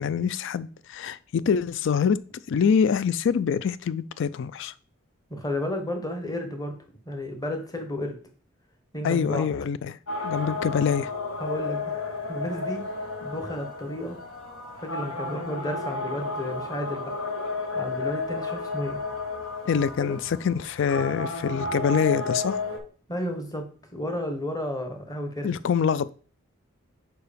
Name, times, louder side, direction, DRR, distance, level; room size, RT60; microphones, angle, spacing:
voice 1, 0.0-2.2 2.5-4.7 9.0-10.0 10.2-11.1 19.7-22.6 25.4-26.1, left 6 dB, 60° left, 0.3 m, -25 dB
voice 2, 5.3-6.7 7.1-8.2 8.9-9.5 11.4-11.9 12.3-12.8 13.2-14.2 14.8-17.1 17.7-19.0 20.0-20.2 23.1-25.5, left 1 dB, 15° left, 1.1 m, -32 dB
sound 1, 10.1-22.8, left 3 dB, 80° left, 1.4 m, -32 dB
4.8 x 4.7 x 5.1 m
head